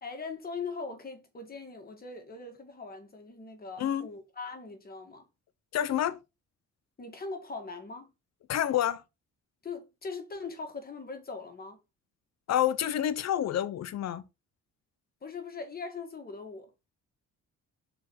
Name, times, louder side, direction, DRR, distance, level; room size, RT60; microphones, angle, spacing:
voice 1, 0.0-5.3 7.0-8.1 9.6-11.8 15.2-16.7, left 4 dB, 30° left, 1.9 m, -41 dB
voice 2, 5.7-6.2 8.5-9.0 12.5-14.2, left 11 dB, 55° left, 0.8 m, -28 dB
6.5 x 4.5 x 4.3 m
cardioid pair, 135°, 32 cm